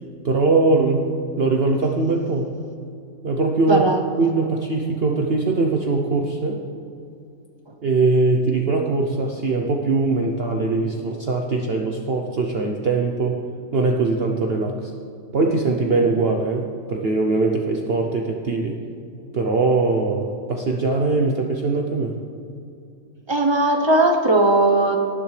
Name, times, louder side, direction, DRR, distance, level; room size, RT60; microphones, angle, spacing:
voice 1, 0.2-1.1 1.4-2.5 3.2-3.8 4.2-6.6 7.8-13.4 13.7-14.9 15.3-18.8 19.3-22.1, right 3 dB, 50° right, 1 dB, 0.9 m, -21 dB
voice 2, 3.7-4.0 23.3-25.0, right 2 dB, 20° right, 4 dB, 0.8 m, -18 dB
18.5 x 11.0 x 3.3 m, 2.5 s
omnidirectional pair, 1.5 m